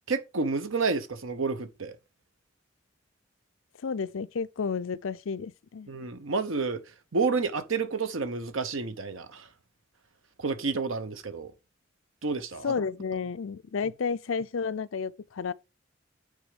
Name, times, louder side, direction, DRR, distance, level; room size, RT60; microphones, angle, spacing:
voice 1, 0.1-1.9 5.9-6.8 7.1-9.5 10.4-11.5 12.2-12.7, right 4 dB, 75° right, 0.9 m, -30 dB
voice 2, 3.8-5.9 12.6-15.5, left 5 dB, 75° left, 0.5 m, -31 dB
9.1 x 3.5 x 4.9 m
head